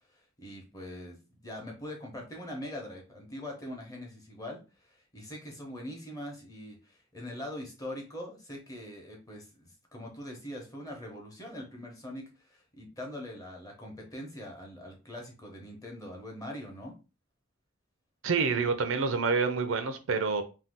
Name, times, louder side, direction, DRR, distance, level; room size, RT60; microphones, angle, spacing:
voice 1, 0.1-16.9, left 1 dB, 20° left, 0.9 m, -42 dB
voice 2, 18.2-20.4, right 4 dB, 85° right, 0.5 m, -27 dB
2.7 x 2.3 x 3.5 m
head